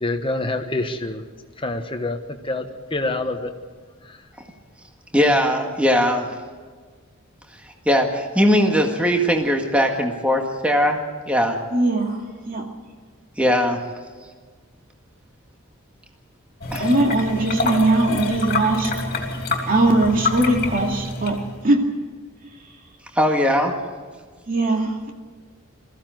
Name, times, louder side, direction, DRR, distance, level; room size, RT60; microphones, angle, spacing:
voice 1, 0.0-1.2 1.6-2.2 2.4-3.5, left 2 dB, 25° left, 6 dB, 1.3 m, -26 dB
voice 2, 5.1-6.3 7.9-11.0 11.3-11.6 13.4-13.8 16.7-16.9 23.2-23.8, equal, 5° right, 2 dB, 1.8 m, -19 dB
voice 3, 11.7-12.7 16.8-18.9 19.6-21.4 21.6-21.9 24.5-25.1, right 2 dB, 40° right, 2 dB, 2.5 m, -20 dB
sound 1, 16.6-21.6, left 3 dB, 45° left, 3.1 m, -26 dB
22.0 x 15.0 x 7.9 m, 1.5 s
head